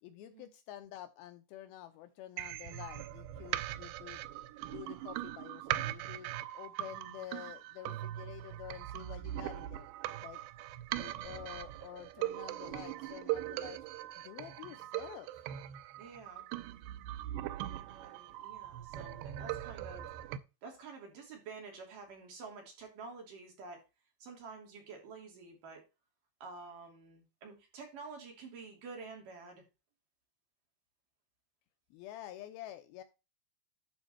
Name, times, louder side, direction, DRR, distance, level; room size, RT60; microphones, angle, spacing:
voice 1, 0.0-4.2 4.7-9.9 10.2-10.4 10.9-13.8 14.2-15.4 31.9-33.0, left 12 dB, 80° left, 2.3 m, -49 dB
sound 1, 2.4-20.4, right 14 dB, 85° right, 2.7 m, -40 dB
voice 2, 16.0-16.5 17.9-20.1 20.6-23.8 24.2-25.9 26.4-29.6, right 4 dB, 55° right, 4.0 m, -49 dB
11.5 x 4.5 x 4.3 m
omnidirectional pair, 4.8 m